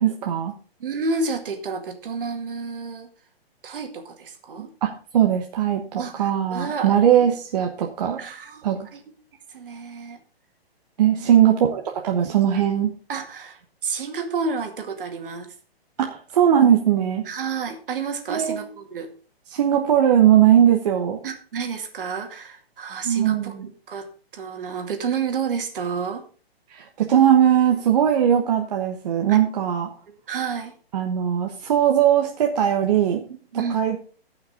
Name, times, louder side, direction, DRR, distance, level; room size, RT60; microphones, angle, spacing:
voice 1, 0.0-0.5 4.6-4.9 5.1-8.2 8.6-8.8 11.0-12.9 16.0-17.3 18.3-18.7 19.5-21.2 23.0-23.7 26.7-29.9 30.9-33.2 33.7-34.0, right 10 dB, 40° right, 2 dB, 1.2 m, -19 dB
voice 2, 0.8-3.1 3.6-4.7 5.9-7.3 8.2-9.1 9.5-10.2 11.2-11.3 13.1-15.5 17.2-19.1 21.2-23.5 23.9-24.1 24.3-26.2 29.3-29.4 30.3-30.7 33.3-33.9, right 5 dB, 60° right, 5 dB, 2.3 m, -30 dB
15.0 x 5.8 x 5.0 m, 0.39 s
hypercardioid pair, 160°, 31 cm